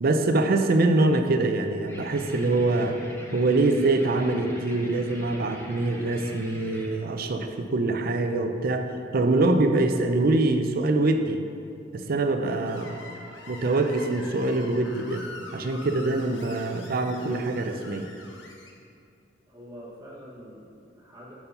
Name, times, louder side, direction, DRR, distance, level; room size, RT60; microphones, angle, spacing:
voice 1, 0.0-3.0 3.3-11.4 11.9-13.0 13.5-15.2 15.5-18.1, right 2 dB, 50° right, 6 dB, 0.5 m, -24 dB
sound 1, 1.9-6.9, equal, 15° left, 0.9 m, -42 dB
Screech, 12.6-18.7, left 2 dB, 85° left, 0.9 m, -44 dB
voice 2, 19.5-21.3, equal, 20° right, -8 dB, 1.1 m, -45 dB
7.0 x 4.4 x 5.3 m, 2.4 s
head